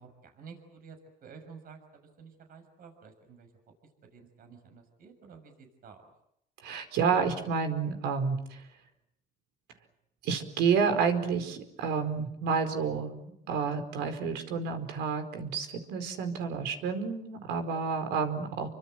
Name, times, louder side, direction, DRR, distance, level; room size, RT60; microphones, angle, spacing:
voice 1, 0.0-3.5 4.0-6.1, right 5 dB, 60° right, 6 dB, 6.5 m, -51 dB
voice 2, 6.6-8.6 10.2-18.7, right 6 dB, 85° right, 8 dB, 4.7 m, -30 dB
29.5 x 25.0 x 7.7 m, 0.78 s
cardioid pair, 110°, 17 cm